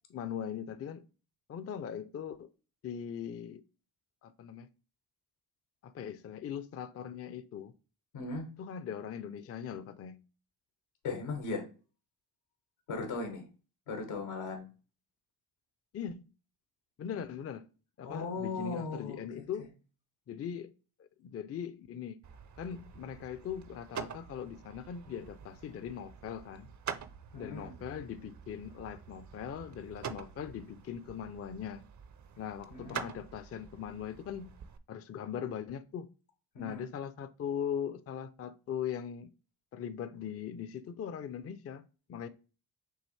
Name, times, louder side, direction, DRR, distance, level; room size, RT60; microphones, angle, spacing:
voice 1, 0.1-1.1 1.5-2.5 2.8-3.6 4.2-4.7 5.8-7.7 8.6-10.2 15.9-16.3 17.0-17.7 18.0-19.7 20.3-20.7 21.0-22.2 22.6-26.7 27.4-31.8 32.4-34.5 34.9-36.1 36.6-39.3 39.7-42.3, left 8 dB, 35° left, 0.4 m, -40 dB
voice 2, 8.1-8.5 11.0-11.6 12.9-13.5 13.9-14.6 18.0-19.4 27.3-27.7 32.7-33.0 36.5-36.8, left 3 dB, 85° left, 1.3 m, -37 dB
sound 1, 22.2-34.8, right 7 dB, 40° right, 0.5 m, -46 dB
6.3 x 2.5 x 3.2 m
supercardioid pair, 55°, 48 cm